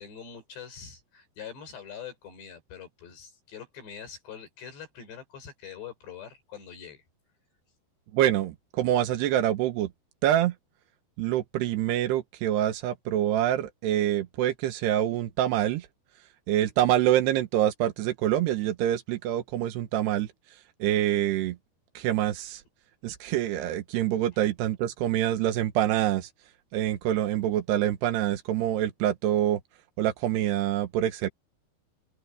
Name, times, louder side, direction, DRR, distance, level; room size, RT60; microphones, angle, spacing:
voice 1, 0.0-7.0, left 7 dB, 80° left, 8.4 m, -44 dB
voice 2, 8.1-9.9 10.2-10.5 11.2-15.9 16.5-20.3 20.8-21.6 22.0-22.6 23.0-26.3 26.7-29.6 30.0-31.3, right 12 dB, 75° right, 3.2 m, -26 dB
open air
omnidirectional pair, 4.9 m